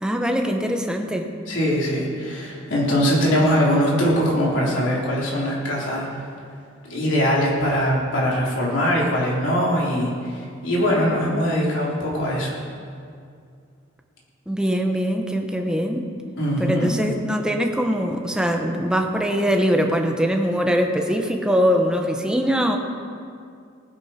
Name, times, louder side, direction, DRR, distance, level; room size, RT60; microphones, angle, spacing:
voice 1, 0.0-1.3 14.5-16.1 16.6-22.8, equal, 5° right, 3 dB, 1.0 m, -22 dB
voice 2, 1.5-6.2 6.8-12.6 16.3-16.9, equal, 70° left, -5 dB, 3.7 m, -22 dB
19.5 x 9.9 x 4.4 m, 2.3 s
head